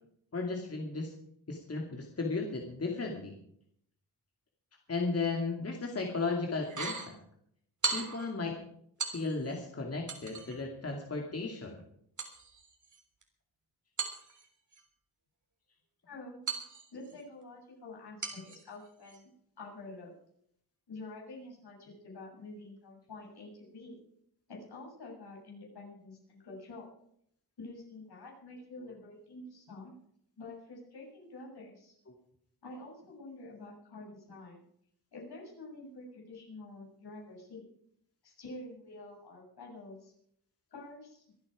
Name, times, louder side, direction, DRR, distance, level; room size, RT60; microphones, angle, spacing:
voice 1, 0.3-1.1 1.5-3.3 4.9-7.2 7.9-8.6 9.1-11.8 32.1-32.2, left 3 dB, 35° left, 1 dB, 2.4 m, -35 dB
sound 1, 6.6-7.1 7.8-8.3 9.0-9.6 10.1-10.6 12.2-13.2 14.0-14.8 16.5-17.2 18.2-18.6 19.1-19.2, right 4 dB, 50° right, 3.4 m, -38 dB
voice 2, 16.1-16.4 16.9-19.3 19.6-20.1 20.9-24.0 24.5-26.9 27.6-29.9 30.4-31.9 32.6-34.7 35.1-37.7 38.2-40.1 40.7-41.2, left 2 dB, 75° left, -2 dB, 6.9 m, -48 dB
25.0 x 8.9 x 4.9 m, 0.69 s
wide cardioid pair, 115°, 40 cm